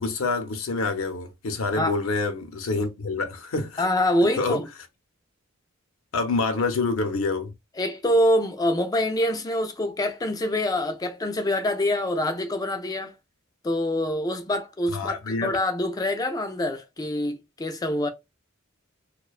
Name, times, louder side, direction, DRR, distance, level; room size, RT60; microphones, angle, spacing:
voice 1, 0.0-3.9 4.4-4.6 6.1-7.5 14.9-15.5, left 3 dB, 70° left, 0.6 m, -27 dB
voice 2, 3.8-4.7 7.8-13.1 13.6-15.1 15.4-18.1, left 1 dB, 20° left, 0.3 m, -25 dB
2.4 x 2.1 x 2.3 m
head